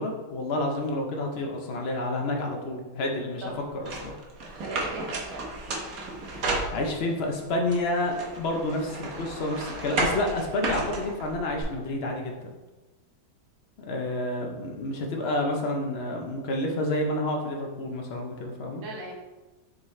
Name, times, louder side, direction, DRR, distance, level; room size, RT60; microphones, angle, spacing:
voice 1, 0.0-3.4 3.7-4.1 6.3-6.4 6.7-12.5 13.9-18.8, left 1 dB, 70° left, 1 dB, 0.5 m, -29 dB
sound 1, 3.9-7.2 7.7-11.6, right 2 dB, 55° right, 1.3 m, -32 dB
voice 2, 4.6-5.5 8.1-8.4 18.8-19.2, right 2 dB, 80° right, -1 dB, 1.9 m, -38 dB
7.2 x 4.1 x 3.2 m, 1.2 s
omnidirectional pair, 2.1 m